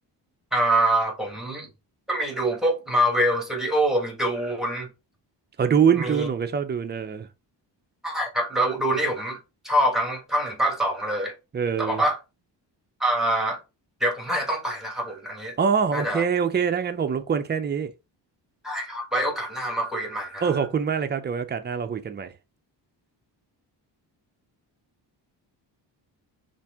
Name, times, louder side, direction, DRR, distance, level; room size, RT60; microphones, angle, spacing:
voice 1, 0.5-1.7 2.1-4.9 6.0-6.3 8.0-9.4 9.6-11.3 11.8-12.2 13.0-13.6 14.0-15.5 15.9-16.2 18.6-20.6, right 1 dB, ahead, 1.5 m, -25 dB
voice 2, 5.6-7.3 11.5-12.0 15.6-17.9 20.4-22.3, right 7 dB, 25° right, 0.5 m, -24 dB
5.6 x 2.6 x 3.5 m
cardioid pair, 130°, 43 cm